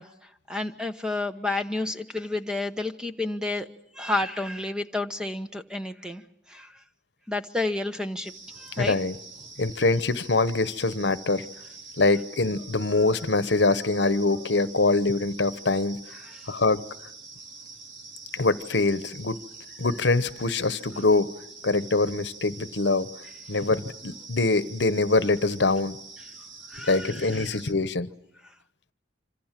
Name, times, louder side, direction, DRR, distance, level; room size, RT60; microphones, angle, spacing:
voice 1, 0.0-3.7 3.9-6.2 6.5-6.7 7.3-9.0 16.2-16.4 26.7-27.6, left 2 dB, 5° right, 7 dB, 1.0 m, -31 dB
sound 1, 8.2-27.7, right 4 dB, 90° right, 3.4 m, -45 dB
voice 2, 8.8-9.1 9.6-11.5 12.0-16.0 16.5-16.8 18.3-19.4 19.8-21.3 21.6-23.1 23.5-26.0 26.8-28.1, left 3 dB, 70° left, 15 dB, 1.0 m, -24 dB
26.0 x 26.0 x 7.5 m, 0.73 s
head